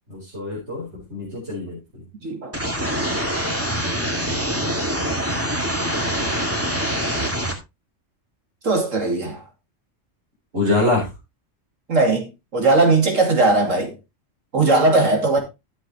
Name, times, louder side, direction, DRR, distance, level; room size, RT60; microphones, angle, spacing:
voice 1, 0.1-1.8 10.5-11.1, left 2 dB, 60° right, 4.7 m, -24 dB
voice 2, 2.2-2.5 8.6-9.4 11.9-13.9 14.5-15.4, right 3 dB, 75° right, 3.0 m, -18 dB
sound 1, 2.5-7.5, equal, 10° right, 2.3 m, -24 dB
13.0 x 7.6 x 3.1 m
omnidirectional pair, 1.3 m